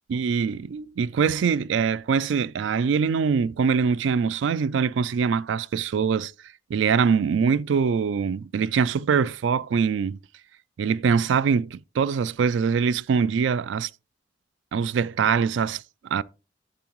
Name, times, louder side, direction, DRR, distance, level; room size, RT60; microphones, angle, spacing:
voice 1, 0.1-6.3 6.7-10.2 10.8-13.9 14.7-16.2, right 6 dB, 85° right, 0.3 m, -23 dB
10.5 x 7.9 x 3.0 m
head